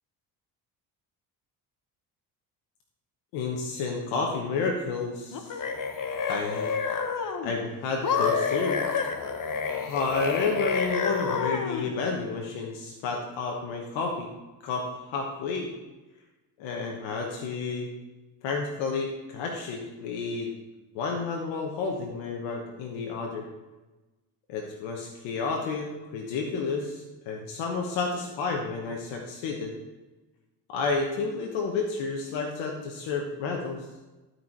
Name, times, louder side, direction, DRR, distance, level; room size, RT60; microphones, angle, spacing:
voice 1, 3.3-5.5 6.3-6.7 7.4-8.8 9.9-14.3 14.6-15.7 16.6-17.9 18.4-20.5 20.9-23.4 24.5-29.7 30.7-33.9, left 4 dB, 80° left, 1 dB, 1.2 m, -31 dB
sound 1, 5.3-7.5 8.0-11.9, left 5 dB, 45° left, 1.2 m, -29 dB
12.5 x 4.7 x 4.6 m, 1.1 s
supercardioid pair, 75°, 43 cm